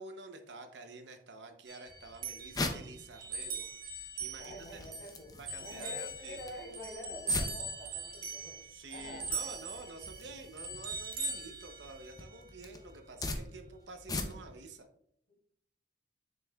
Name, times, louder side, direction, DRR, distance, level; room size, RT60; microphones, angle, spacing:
voice 1, 0.0-3.7 4.0-4.6 5.3-6.4 8.7-14.9, right 2 dB, 80° right, 6 dB, 0.8 m, -49 dB
sound 1, 1.7-5.1 5.5-12.4, right 3 dB, 50° right, 1.5 m, -41 dB
sound 2, 1.9-14.7, left 2 dB, 20° left, 0.6 m, -43 dB
voice 2, 4.4-8.6 8.9-9.3 15.3-15.4, left 1 dB, 90° left, -2 dB, 2.9 m, -47 dB
7.0 x 6.6 x 2.4 m, 0.66 s
head